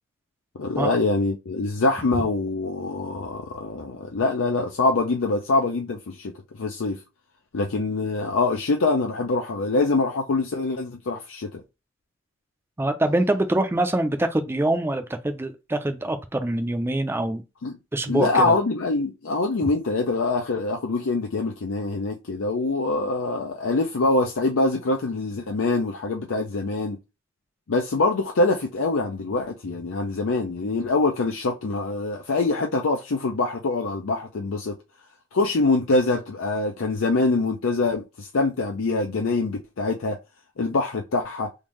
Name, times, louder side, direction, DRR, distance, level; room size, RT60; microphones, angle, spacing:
voice 1, 0.6-7.0 7.5-11.6 17.6-17.7 18.1-27.0 27.7-34.8 35.3-40.2 40.6-41.5, left 3 dB, 85° left, 0.5 m, -24 dB
voice 2, 12.8-17.4 17.9-18.5, right 1 dB, 10° right, 0.4 m, -24 dB
3.7 x 2.6 x 3.0 m
head